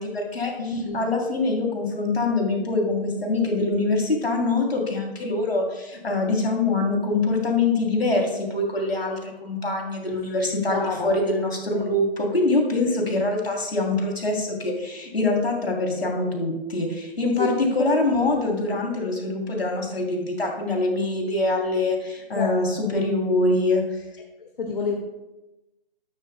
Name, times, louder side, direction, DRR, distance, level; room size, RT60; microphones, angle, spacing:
voice 1, 0.0-23.8, left 2 dB, 85° left, 1 dB, 3.0 m, -24 dB
voice 2, 0.6-1.1 10.7-11.1 11.7-12.0 17.4-17.5 17.8-17.9 22.3-22.5 22.8-23.0 24.6-25.0, left 4 dB, 65° left, 0 dB, 1.7 m, -28 dB
13.5 x 12.0 x 2.2 m, 1.0 s
figure-of-eight pair, 140°, 30 cm